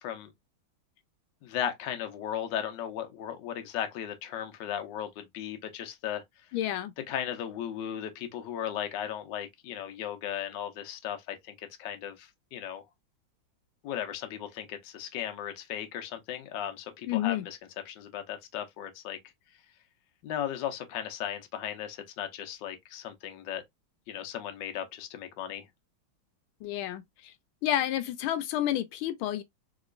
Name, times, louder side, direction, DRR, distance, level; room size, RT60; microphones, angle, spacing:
voice 1, 0.0-0.3 1.4-6.2 7.1-12.8 13.8-17.6 17.8-19.2 20.2-23.6 24.1-25.6, left 10 dB, 70° left, 1.3 m, -36 dB
voice 2, 6.5-6.9 17.1-17.5 26.6-27.3 27.6-29.4, left 12 dB, 90° left, 1.4 m, -30 dB
3.7 x 2.9 x 2.4 m
omnidirectional pair, 2.2 m